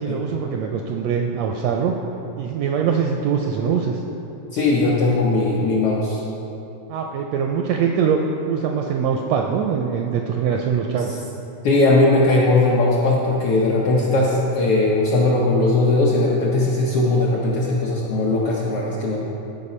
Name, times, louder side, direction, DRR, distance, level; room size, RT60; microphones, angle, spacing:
voice 1, 0.0-1.9 2.4-4.0 6.9-8.2 8.5-11.1, right 7 dB, 80° right, 2 dB, 1.5 m, -22 dB
voice 2, 4.5-6.2 11.6-19.2, left 2 dB, 70° left, -4 dB, 1.3 m, -19 dB
13.5 x 5.2 x 4.2 m, 2.9 s
omnidirectional pair, 3.5 m